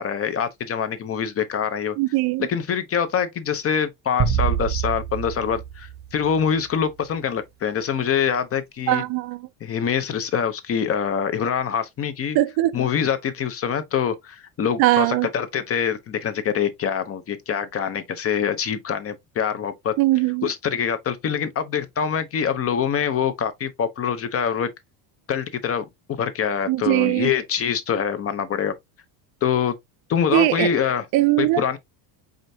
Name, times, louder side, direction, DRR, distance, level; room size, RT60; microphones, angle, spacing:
voice 1, 0.0-2.0 2.4-9.0 9.6-12.4 12.7-19.9 20.4-24.7 25.3-25.8 26.2-28.7 29.4-29.7 30.1-31.1 31.4-31.8, left 7 dB, 30° left, 0.6 m, -24 dB
voice 2, 2.0-2.5 8.9-9.4 12.3-12.8 14.8-15.3 20.0-20.5 26.7-27.3 30.3-30.7 31.1-31.6, right 17 dB, 50° right, 0.5 m, -20 dB
sound 1, 4.2-6.7, right 8 dB, 20° right, 0.8 m, -26 dB
5.0 x 3.4 x 2.6 m
cardioid pair, 120°, 47 cm